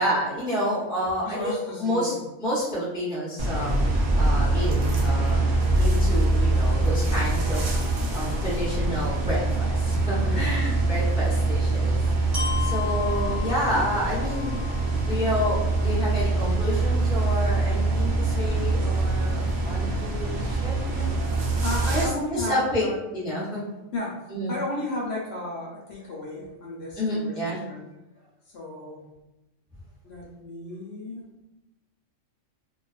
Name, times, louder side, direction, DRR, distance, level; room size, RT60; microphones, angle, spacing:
voice 1, 0.0-2.1 2.4-3.7 4.2-5.4 5.8-7.6 8.1-12.0 12.6-14.5 15.1-20.8 21.9-22.9 23.1-23.7 24.3-24.5 27.0-27.6, equal, 5° right, -7 dB, 0.4 m, -29 dB
voice 2, 1.2-2.2 10.2-10.7 20.9-21.1 21.6-23.0 23.9-24.2 24.5-27.8 28.5-29.1 30.0-31.2, left 1 dB, 65° left, -3 dB, 0.8 m, -34 dB
sound 1, 3.4-22.1, right 2 dB, 65° right, 0.5 m, -24 dB
Glockenspiel, 12.3-16.3, left 6 dB, 30° right, 0.9 m, -36 dB
2.4 x 2.2 x 2.3 m, 0.97 s
omnidirectional pair, 1.3 m